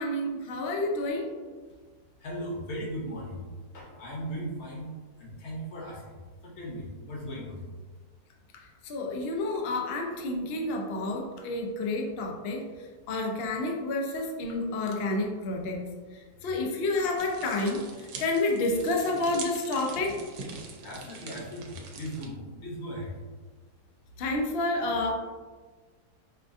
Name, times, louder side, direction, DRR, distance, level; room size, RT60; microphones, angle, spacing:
voice 1, 0.0-1.3 8.9-12.6 13.1-15.8 16.4-17.8 18.2-20.2 24.2-25.1, left 2 dB, 85° left, 1 dB, 0.5 m, -29 dB
voice 2, 2.2-4.9 5.2-6.0 6.4-7.6 16.4-16.6 20.8-23.1, equal, 50° left, -2 dB, 1.0 m, -38 dB
sound 1, 17.2-22.3, right 4 dB, 85° right, 1.2 m, -43 dB
4.7 x 2.3 x 2.6 m, 1.4 s
omnidirectional pair, 1.7 m